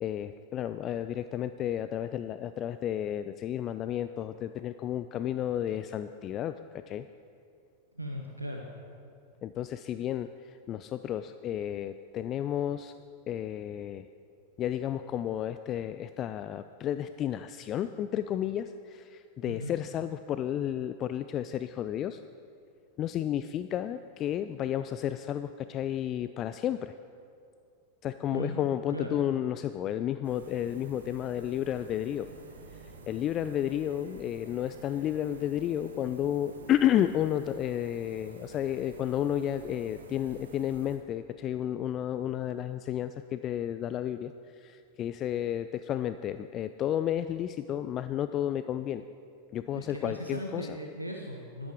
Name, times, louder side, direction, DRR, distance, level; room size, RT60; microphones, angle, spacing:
voice 1, 0.0-7.1 9.4-12.9 13.3-14.1 14.6-22.2 23.0-27.0 28.0-32.3 32.8-49.0 49.5-50.7, left 11 dB, 30° left, 11 dB, 0.3 m, -32 dB
voice 2, 7.9-8.7 19.5-19.7 28.3-28.6 28.9-29.2 49.7-51.7, equal, 90° right, 1 dB, 0.9 m, -38 dB
sound 1, 30.2-41.0, right 3 dB, 70° right, 1.3 m, -50 dB
sound 2, 30.7-37.2, right 2 dB, 35° right, 2.5 m, -59 dB
12.0 x 11.5 x 4.7 m, 2.4 s
figure-of-eight pair, 90°, 0 cm